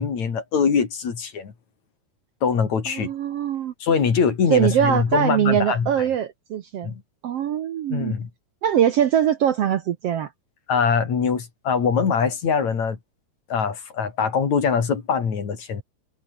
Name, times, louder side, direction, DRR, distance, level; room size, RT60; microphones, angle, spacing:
voice 1, 0.0-1.5 2.4-3.1 3.8-6.1 6.8-7.0 7.9-8.3 10.7-13.0 13.5-15.8, left 6 dB, 55° left, 4.5 m, -23 dB
voice 2, 2.9-3.7 4.5-6.9 7.2-8.1 8.6-10.3, right 9 dB, 65° right, 1.6 m, -22 dB
omnidirectional pair, 3.9 m